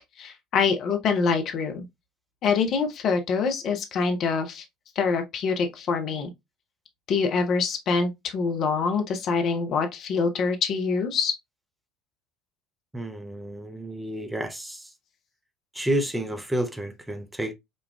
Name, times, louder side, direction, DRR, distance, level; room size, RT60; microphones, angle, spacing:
voice 1, 0.2-1.8 2.4-4.6 5.0-6.3 7.1-11.3, left 5 dB, 45° left, 0.6 m, -25 dB
voice 2, 12.9-14.9 15.7-17.5, right 1 dB, 10° right, 0.7 m, -30 dB
5.2 x 2.3 x 2.2 m
figure-of-eight pair, 65°, 0 cm